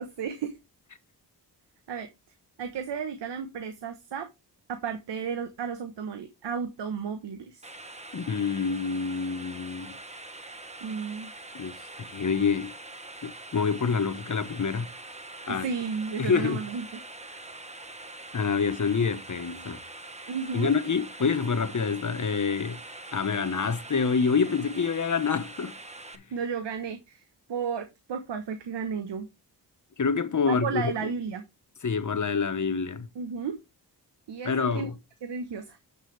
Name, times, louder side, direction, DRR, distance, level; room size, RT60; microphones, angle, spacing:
voice 1, 0.2-0.5 1.9-2.1 2.6-4.3 4.7-7.6 9.4-9.5 10.8-11.3 15.5-16.9 17.2-17.4 20.3-20.7 26.3-27.2 27.5-29.3 30.4-31.4 33.1-33.6 34.3-34.9 35.2-35.8, right 6 dB, 80° right, 1.2 m, -33 dB
sound 1, 7.6-26.2, right 2 dB, 15° right, 1.3 m, -44 dB
voice 2, 8.1-9.9 11.5-11.8 12.1-12.7 13.2-14.9 15.5-15.7 16.2-16.6 18.3-19.8 20.5-22.8 23.1-25.7 26.1-26.2 30.0-31.1 31.8-33.1 34.4-35.0, left 5 dB, 45° left, 1.2 m, -27 dB
9.3 x 6.7 x 3.3 m
cardioid pair, 55°, 42 cm